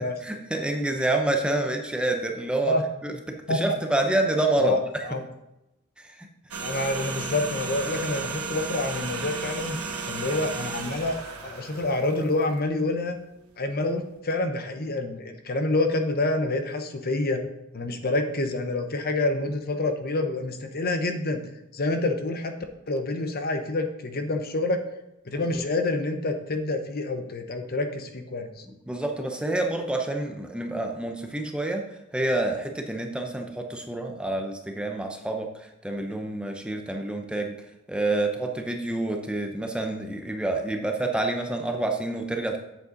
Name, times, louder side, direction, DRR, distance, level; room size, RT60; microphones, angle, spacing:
voice 1, 0.2-2.7 3.0-5.1 6.0-6.3 25.3-25.6 28.9-31.8 32.1-37.5 37.9-42.6, right 2 dB, 5° right, 3 dB, 0.7 m, -28 dB
voice 2, 4.6-5.2 6.6-11.2 11.4-13.2 13.6-17.4 17.7-21.4 21.7-22.5 22.9-24.8 25.2-28.6, left 2 dB, 45° left, 7 dB, 0.8 m, -27 dB
sound 1, 6.5-12.8 13.1-13.3, right 4 dB, 85° right, 1.3 m, -34 dB
8.3 x 7.5 x 3.9 m, 0.90 s
head